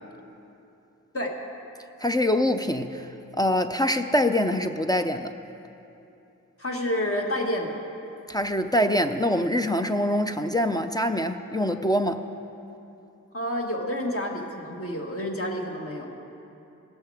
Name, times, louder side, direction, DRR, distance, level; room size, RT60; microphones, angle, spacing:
voice 1, 2.0-5.3 8.3-12.3, left 1 dB, 10° left, 7 dB, 0.5 m, -24 dB
voice 2, 6.6-7.7 13.3-16.1, left 1 dB, 40° left, 0 dB, 1.7 m, -29 dB
17.0 x 6.3 x 4.9 m, 2.9 s
cardioid pair, 45°, 33 cm